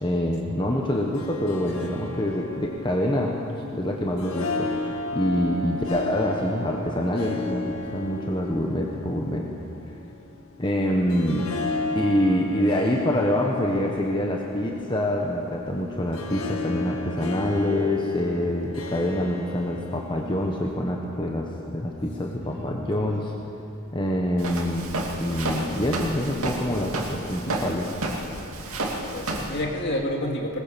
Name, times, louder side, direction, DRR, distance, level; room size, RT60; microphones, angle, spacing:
voice 1, 0.0-3.4 3.7-4.7 5.1-9.5 10.6-11.5 11.9-23.3 23.9-24.9 25.2-27.9, left 1 dB, 20° left, 0 dB, 1.3 m, -26 dB
Harp, 0.9-20.8, left 2 dB, 70° left, 1.8 m, -34 dB
voice 2, 22.4-22.8 29.1-30.6, left 1 dB, 50° left, 1 dB, 2.6 m, -29 dB
Walk footsteps, 24.4-29.6, right 2 dB, 70° right, 2.6 m, -31 dB
20.5 x 20.0 x 7.1 m, 2.8 s
head